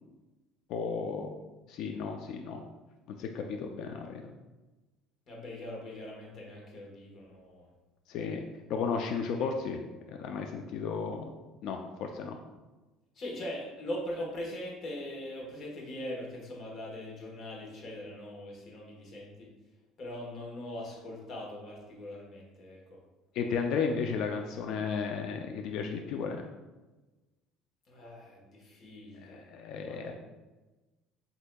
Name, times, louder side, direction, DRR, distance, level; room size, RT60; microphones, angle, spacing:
voice 1, 0.7-1.3 1.7-2.6 3.1-4.2 8.1-8.4 8.7-9.8 10.1-11.3 11.6-12.4 23.3-26.4 29.2-30.1, left 5 dB, 60° left, 4 dB, 0.4 m, -34 dB
voice 2, 5.3-7.7 9.4-9.5 13.1-19.5 20.0-23.0 27.9-29.5 29.8-30.1, left 1 dB, 40° left, -1 dB, 1.2 m, -41 dB
7.7 x 2.7 x 2.2 m, 1.2 s
cardioid pair, 150°, 0 cm